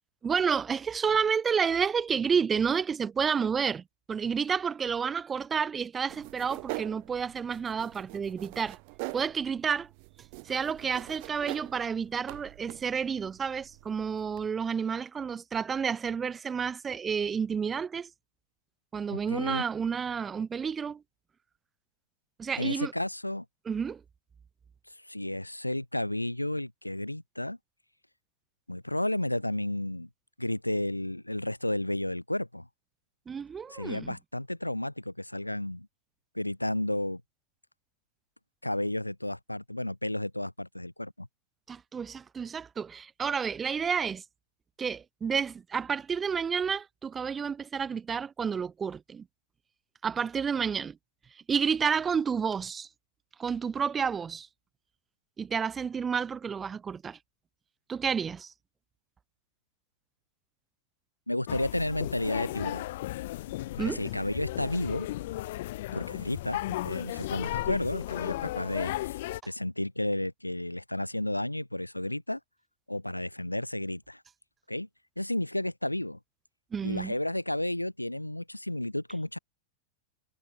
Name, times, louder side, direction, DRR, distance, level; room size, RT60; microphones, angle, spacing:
voice 1, 0.2-8.8 9.1-9.9 10.4-18.1 18.9-21.0 22.4-22.9 23.7-24.0 33.3-34.2 41.7-44.2 44.8-49.2 50.0-51.0 51.5-52.9 53.4-54.5 55.4-57.2 57.9-58.5 63.8-64.0 76.7-77.1, right 6 dB, 20° right, 0.7 m, -30 dB
sound 1, 6.1-14.5, right 36 dB, 45° right, 1.9 m, -44 dB
voice 2, 19.1-19.6 22.6-23.4 25.1-27.6 28.7-30.1 30.4-32.7 33.7-35.9 36.3-37.2 38.6-41.3 61.3-62.8 63.7-65.1 65.9-68.9 69.5-72.4 72.9-74.2 74.7-74.9 75.2-76.2 76.8-79.4, left 1 dB, 85° left, 0.8 m, -32 dB
sound 2, 61.5-69.4, left 16 dB, 55° left, 0.4 m, -35 dB
figure-of-eight pair, 90°, 0 cm